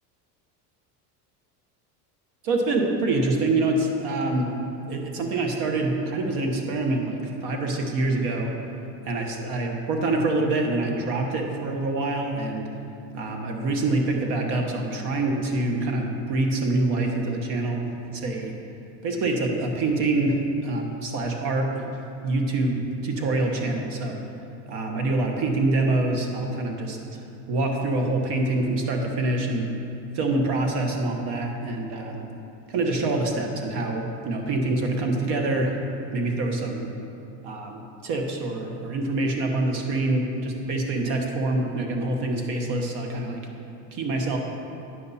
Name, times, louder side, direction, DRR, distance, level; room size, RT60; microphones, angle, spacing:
voice 1, 2.4-4.5 4.9-8.5 9.0-12.7 13.1-18.5 19.0-24.2 24.7-29.7 30.1-32.2 32.7-35.7 36.1-36.9 37.4-43.4 43.9-44.4, right 2 dB, 55° right, 2 dB, 1.3 m, -26 dB
9.4 x 6.8 x 4.2 m, 2.7 s
supercardioid pair, 100°, 49 cm